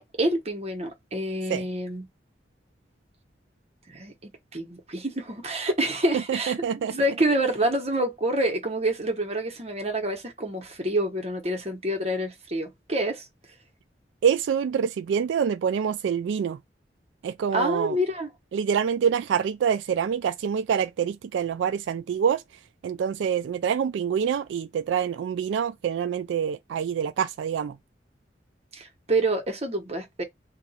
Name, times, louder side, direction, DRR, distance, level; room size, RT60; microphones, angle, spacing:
voice 1, 0.0-2.1 3.9-6.6 6.9-13.2 17.5-18.3 28.7-30.2, right 1 dB, 35° right, 1.1 m, -27 dB
voice 2, 6.1-6.9 14.2-16.6 17.2-18.0 18.5-22.4 22.8-27.8, right 7 dB, 85° right, 0.3 m, -26 dB
2.8 x 2.6 x 4.1 m
head